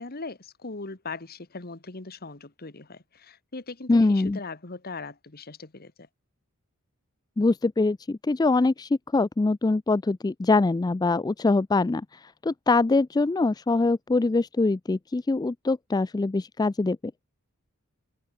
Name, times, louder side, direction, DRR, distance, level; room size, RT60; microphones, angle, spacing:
voice 1, 0.0-5.9, left 3 dB, 45° left, 1.5 m, -39 dB
voice 2, 3.9-4.4 7.4-17.0, left 3 dB, 20° left, 0.3 m, -23 dB
head